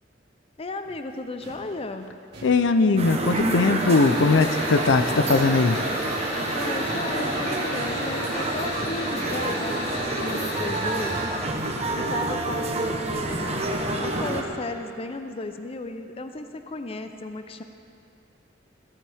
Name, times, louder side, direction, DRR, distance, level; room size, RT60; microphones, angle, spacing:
voice 1, 0.6-2.1 6.5-11.3 11.9-17.6, left 2 dB, 30° left, 7 dB, 0.5 m, -35 dB
sound 1, 0.8-6.6 6.8-9.0, right 1 dB, 65° right, 1.9 m, -46 dB
voice 2, 2.4-5.8, left 3 dB, 80° left, 10 dB, 0.6 m, -20 dB
sound 2, 3.0-14.4, right 2 dB, 35° right, 1.1 m, -28 dB
sound 3, 3.8-11.2, equal, 65° left, 3.4 m, -32 dB
15.0 x 14.0 x 3.5 m, 2.5 s
head